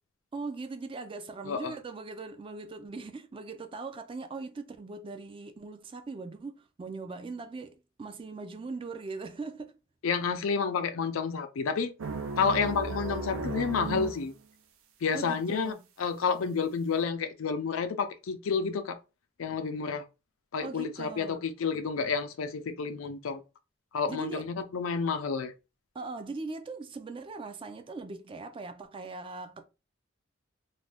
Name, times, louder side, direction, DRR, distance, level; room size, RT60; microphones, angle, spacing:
voice 1, 0.3-9.8 15.1-15.8 20.6-21.5 24.1-24.5 25.9-29.6, right 3 dB, 25° right, 0.3 m, -40 dB
voice 2, 10.0-11.9 12.4-14.3 15.0-19.0 19.4-20.0 20.5-23.4 23.9-25.5, left 5 dB, 85° left, 0.4 m, -30 dB
sound 1, 12.0-14.3, right 4 dB, 85° right, 0.5 m, -35 dB
2.5 x 2.2 x 3.3 m
head